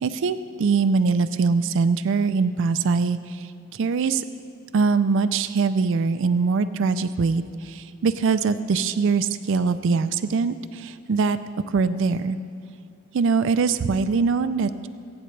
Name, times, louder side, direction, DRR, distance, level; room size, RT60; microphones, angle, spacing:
voice 1, 0.0-4.2 4.7-11.4 11.7-12.4 13.1-14.9, right 4 dB, 65° right, 12 dB, 0.4 m, -22 dB
22.0 x 8.8 x 3.2 m, 2.3 s
head